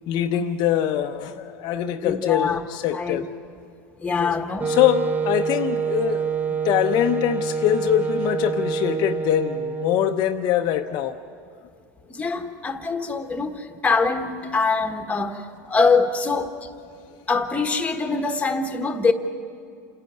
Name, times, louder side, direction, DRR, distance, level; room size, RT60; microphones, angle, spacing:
voice 1, 0.1-3.3 4.2-4.3 4.7-6.3 6.6-11.2, left 11 dB, 50° left, 5 dB, 0.8 m, -23 dB
voice 2, 2.0-2.6 2.9-3.3 4.0-4.8 12.1-15.4 15.7-16.5 17.3-19.1, left 4 dB, 15° left, 6 dB, 1.4 m, -23 dB
Wind instrument woodwind instrument, 4.6-10.3, right 5 dB, 15° right, 0.5 m, -26 dB
28.5 x 10.0 x 9.4 m, 2.3 s
supercardioid pair, 120°, 10 cm